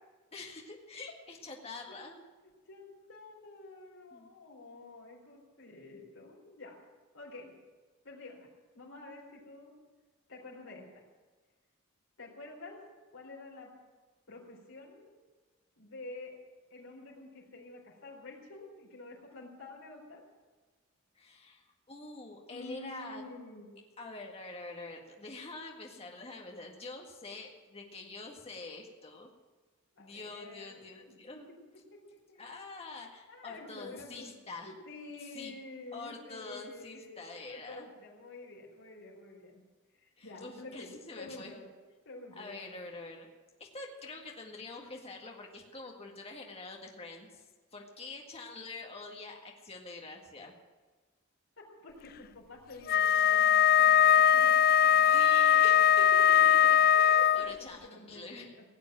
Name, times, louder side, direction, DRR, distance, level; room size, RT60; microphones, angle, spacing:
voice 1, 0.3-2.2 4.1-4.3 21.2-23.2 24.0-29.3 30.0-31.5 32.4-34.7 35.2-35.6 35.9-37.9 40.2-41.6 42.4-43.3 43.6-47.4 47.7-50.5 54.9-58.5, left 3 dB, 30° left, 1 dB, 1.8 m, -46 dB
voice 2, 2.7-6.8 7.1-7.5 8.0-9.7 10.3-11.0 12.2-12.8 13.1-13.7 14.3-15.1 15.8-16.4 16.7-20.2 22.5-23.7 29.9-31.2 31.9-32.0 32.3-32.6 33.3-34.3 34.6-39.6 39.9-41.7 42.0-42.8 51.6-54.5 55.5-58.6, left 2 dB, 70° left, -3 dB, 4.2 m, -49 dB
Wind instrument woodwind instrument, 52.9-57.6, left 9 dB, 45° left, 0.4 m, -22 dB
17.5 x 8.6 x 9.0 m, 1.3 s
head